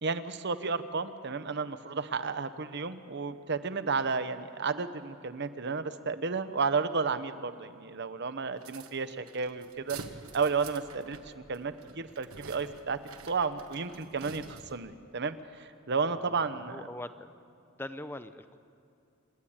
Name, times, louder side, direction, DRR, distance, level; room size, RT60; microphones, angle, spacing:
voice 1, 0.0-10.0 10.3-13.0 13.2-16.9, right 4 dB, 55° right, 11 dB, 0.9 m, -32 dB
sound 1, 8.6-14.9, right 4 dB, 85° right, 1.4 m, -48 dB
voice 2, 16.1-17.3 17.8-18.6, left 1 dB, 10° left, 10 dB, 0.6 m, -42 dB
28.5 x 11.5 x 8.8 m, 2.6 s
head